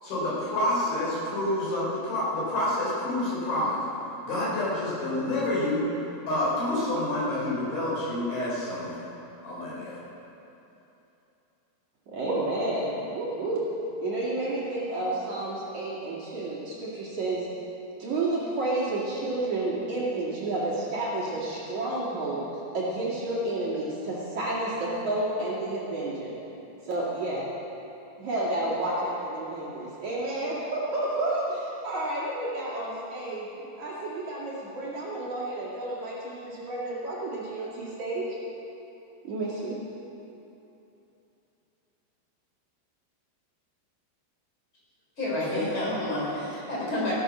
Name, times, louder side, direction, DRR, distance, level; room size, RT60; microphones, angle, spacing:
voice 1, 0.0-3.8 4.2-5.8 6.3-9.0 9.4-9.9, left 1 dB, 50° left, -7 dB, 5.8 m, -28 dB
voice 2, 12.1-13.6 14.0-17.5 18.0-22.4 22.7-26.4 26.8-27.5 28.2-38.2 39.2-39.8, right 2 dB, 45° right, -8 dB, 2.9 m, -30 dB
voice 3, 45.2-47.1, left 1 dB, 25° left, -5 dB, 4.0 m, -29 dB
15.5 x 11.0 x 6.2 m, 3.0 s
omnidirectional pair, 5.6 m